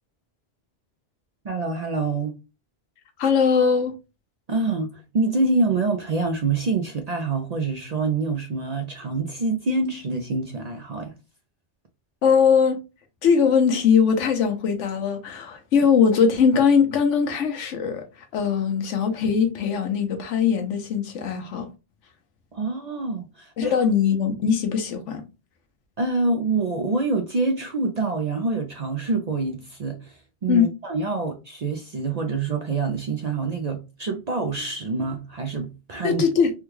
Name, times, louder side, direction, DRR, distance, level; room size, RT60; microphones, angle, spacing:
voice 1, 1.4-2.3 4.5-11.1 22.5-23.8 26.0-36.2, right 3 dB, 55° right, 0.5 m, -26 dB
voice 2, 3.2-3.9 12.2-12.8 13.2-18.0 18.3-21.7 23.6-25.2 30.5-30.7 36.0-36.5, left 6 dB, 90° left, 1.1 m, -20 dB
3.4 x 2.2 x 3.1 m
omnidirectional pair, 1.2 m